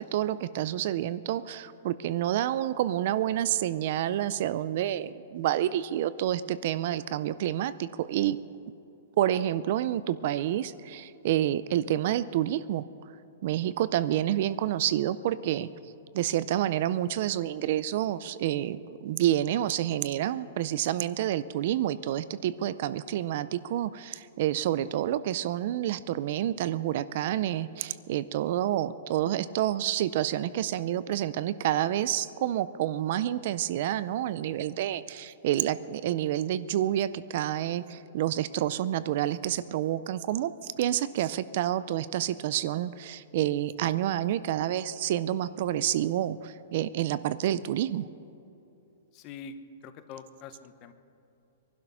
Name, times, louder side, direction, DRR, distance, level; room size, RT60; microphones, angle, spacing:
voice 1, 0.0-8.4 9.2-12.8 13.4-15.7 16.1-48.1, right 12 dB, 45° right, 15 dB, 0.4 m, -28 dB
voice 2, 49.1-49.6 49.8-50.9, left 6 dB, 25° left, 10 dB, 0.8 m, -44 dB
22.0 x 12.0 x 5.6 m, 2.8 s
hypercardioid pair, 175°, 0 cm